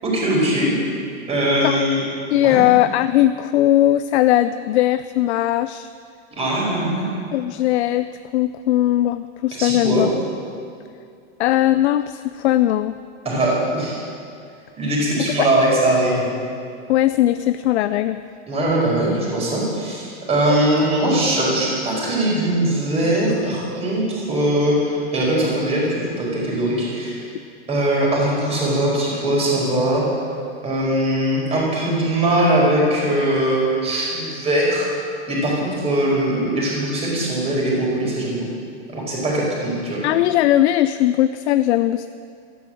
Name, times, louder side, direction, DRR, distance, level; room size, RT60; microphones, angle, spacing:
voice 1, 0.0-0.7 1.3-2.0 2.4-2.6 6.3-7.1 9.6-10.0 13.2-14.1 14.8-16.3 18.5-27.3 27.7-30.0 30.6-34.9 35.3-38.5 38.9-40.0, right 1 dB, 15° right, -4 dB, 5.0 m, -21 dB
voice 2, 2.3-5.9 7.3-10.1 11.4-13.0 15.2-15.5 16.9-18.2 40.0-42.1, left 13 dB, 70° left, 12 dB, 0.6 m, -19 dB
13.5 x 12.0 x 7.7 m, 2.4 s
supercardioid pair, 155°, 34 cm